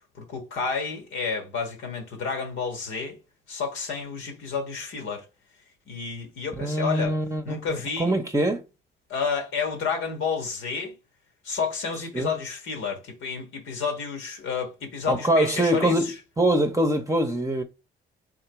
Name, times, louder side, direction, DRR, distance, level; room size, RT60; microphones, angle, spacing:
voice 1, 0.2-3.2 3.5-5.3 5.9-7.2 7.4-8.2 9.1-10.9 11.4-16.1, left 5 dB, 85° left, 1.5 m, -30 dB
voice 2, 6.6-7.4 7.7-8.6 12.1-12.3 15.1-17.6, right 1 dB, 15° right, 0.8 m, -24 dB
3.8 x 2.9 x 4.7 m
cardioid pair, 75°, 21 cm